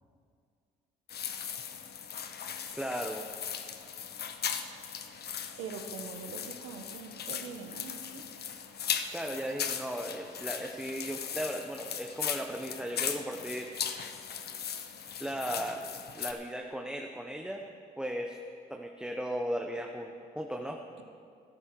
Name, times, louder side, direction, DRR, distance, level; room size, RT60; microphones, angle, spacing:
sound 1, 1.1-16.3, left 8 dB, 55° left, 0.9 m, -38 dB
voice 1, 2.7-3.2 9.1-13.7 15.2-15.9 16.1-17.6 18.0-18.4 18.7-20.8, equal, 5° right, 2 dB, 1.0 m, -36 dB
voice 2, 5.6-8.3, right 5 dB, 75° right, 5 dB, 1.2 m, -43 dB
13.0 x 11.0 x 4.7 m, 2.3 s
supercardioid pair, 55°, 19 cm